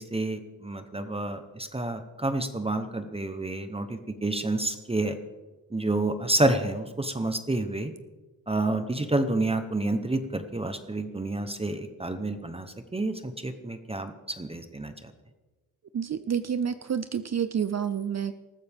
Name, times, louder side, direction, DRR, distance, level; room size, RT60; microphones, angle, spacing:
voice 1, 0.0-5.2 5.7-7.9 8.5-12.7 12.9-14.9, right 2 dB, 15° right, 8 dB, 0.9 m, -29 dB
voice 2, 15.9-18.3, right 8 dB, 50° right, 11 dB, 0.6 m, -29 dB
20.0 x 14.5 x 3.5 m, 1.2 s
wide cardioid pair, 130°, 35 cm